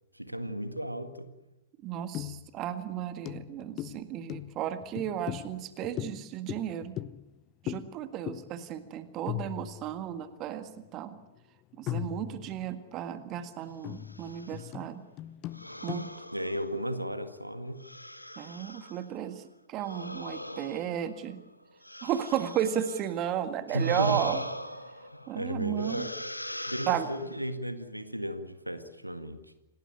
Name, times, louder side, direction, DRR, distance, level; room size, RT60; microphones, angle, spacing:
voice 1, 0.1-1.3 16.3-17.8 23.7-24.4 25.3-26.1 26.7-29.4, right 1 dB, 90° right, 1.9 m, -34 dB
voice 2, 1.8-7.0 7.6-11.2 11.8-15.0 15.8-16.1 18.4-19.4 19.7-21.4 22.0-24.4 25.3-26.1 26.9-27.1, right 10 dB, 30° right, 1.8 m, -34 dB
sound 1, 2.1-2.6 2.9-3.0 3.3-7.4 7.7-8.0 8.3-8.6 8.9-9.0 9.3-10.1 10.9-11.0 11.8-12.8 13.2-16.1, left 13 dB, 30° left, 0.8 m, -39 dB
sound 2, 13.9-14.6 15.5-17.2 17.8-19.1 19.8-23.2 23.7-25.4 25.8-27.5, left 1 dB, 85° left, 1.6 m, -41 dB
28.0 x 19.0 x 8.5 m
figure-of-eight pair, 105°, 0 cm